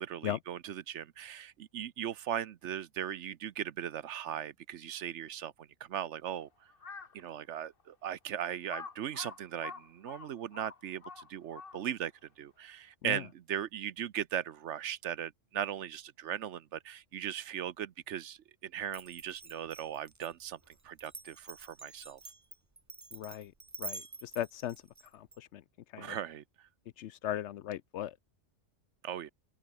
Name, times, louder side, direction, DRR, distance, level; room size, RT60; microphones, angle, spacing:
voice 1, 0.0-6.5 7.1-22.2 26.0-26.7 29.0-29.3, right 10 dB, 70° right, 1.0 m, -38 dB
Crow, 6.7-7.2 7.8-7.9 8.7-12.1, left 5 dB, 45° left, 1.7 m, -46 dB
Glass, 18.9-25.4, right 3 dB, 20° right, 0.5 m, -47 dB
voice 2, 23.1-23.5 23.8-24.8 25.1-25.6 25.9-26.2 27.0-28.2, left 12 dB, 70° left, 0.8 m, -38 dB
open air
omnidirectional pair, 1.3 m